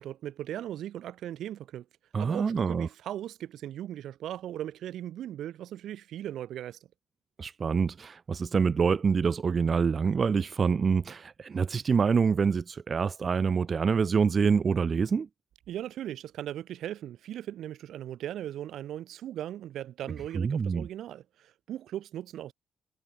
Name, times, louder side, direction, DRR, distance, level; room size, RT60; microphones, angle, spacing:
voice 1, 0.0-1.8 2.2-6.8 15.7-22.5, right 12 dB, 75° right, 3.9 m, -38 dB
voice 2, 2.1-2.9 7.4-15.3 20.3-20.9, right 5 dB, 40° right, 0.8 m, -26 dB
cardioid pair, 90°, 0 cm